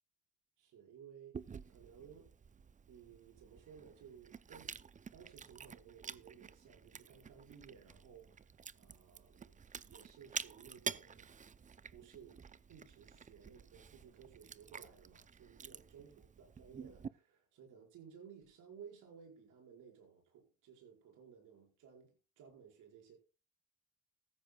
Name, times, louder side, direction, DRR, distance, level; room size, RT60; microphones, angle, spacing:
voice 1, 0.6-2.3 2.9-4.8 5.1-11.3 11.9-23.2, right 7 dB, 85° right, 4.9 m, -58 dB
Chewing mastication, 1.3-17.1, right 6 dB, 25° right, 0.5 m, -49 dB
15.5 x 14.0 x 2.3 m
cardioid pair, 90°, 30 cm